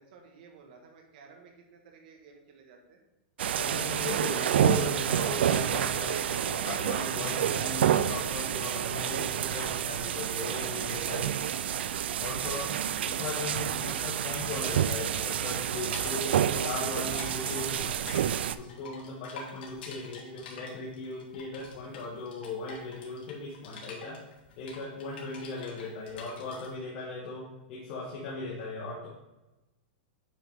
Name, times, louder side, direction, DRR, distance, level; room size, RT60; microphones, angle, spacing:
voice 1, 0.0-3.0 19.4-19.6, right 5 dB, 55° right, 2 dB, 1.4 m, -55 dB
sound 1, 3.4-18.5, right 10 dB, 90° right, 0.3 m, -29 dB
voice 2, 3.6-11.6 12.2-18.0 18.5-24.2 24.6-29.1, left 3 dB, 45° left, -4 dB, 1.5 m, -38 dB
sound 2, 15.7-16.9 17.1-26.7, left 5 dB, 75° left, 1.9 m, -47 dB
8.9 x 4.5 x 3.4 m, 1.0 s
supercardioid pair, 160°, 6 cm